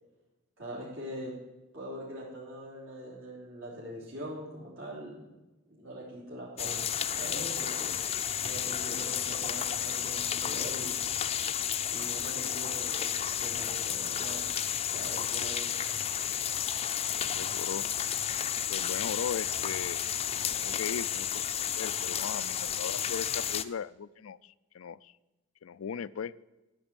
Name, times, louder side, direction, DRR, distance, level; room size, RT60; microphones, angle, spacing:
voice 1, 0.6-1.3 1.7-5.3 5.7-11.0 11.9-13.1 13.4-14.4 14.9-15.7, right 1 dB, 75° right, -6 dB, 3.5 m, -42 dB
sound 1, 6.6-23.6, left 9 dB, 30° left, 0.5 m, -32 dB
voice 2, 17.2-17.9 18.7-20.1 20.4-21.5 21.8-25.1 25.6-26.3, left 7 dB, 90° left, 19 dB, 0.4 m, -38 dB
13.5 x 6.2 x 8.9 m, 1.1 s
head